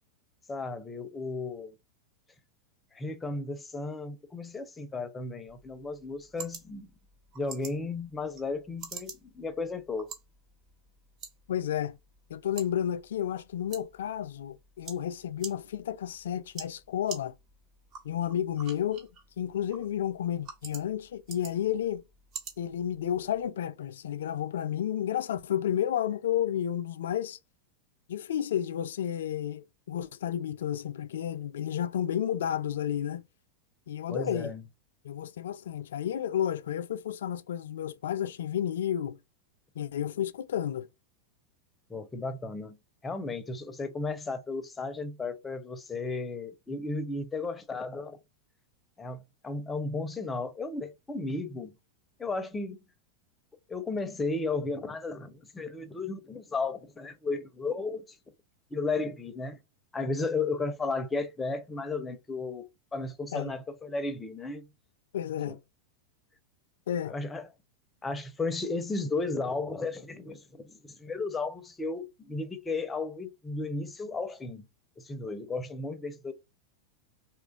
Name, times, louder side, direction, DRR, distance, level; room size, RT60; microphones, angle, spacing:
voice 1, 0.5-1.7 2.9-6.9 7.4-10.1 34.1-34.6 41.9-42.8 43.0-48.2 49.0-51.7 52.2-52.8 53.7-58.2 58.7-59.6 59.9-64.6 65.4-65.5 67.1-67.5 68.0-70.7 71.0-74.7 75.0-76.3, left 3 dB, 15° left, 0.6 m, -34 dB
sound 1, 5.5-23.5, right 6 dB, 45° right, 1.3 m, -48 dB
voice 2, 11.5-12.0 12.3-17.3 18.0-19.1 19.4-22.0 22.6-27.4 28.1-33.2 33.9-34.5 35.0-39.2 39.8-40.9 63.3-63.5 65.1-65.6 66.9-67.1, left 10 dB, 80° left, 0.3 m, -31 dB
2.9 x 2.5 x 2.3 m
hypercardioid pair, 105°, 0 cm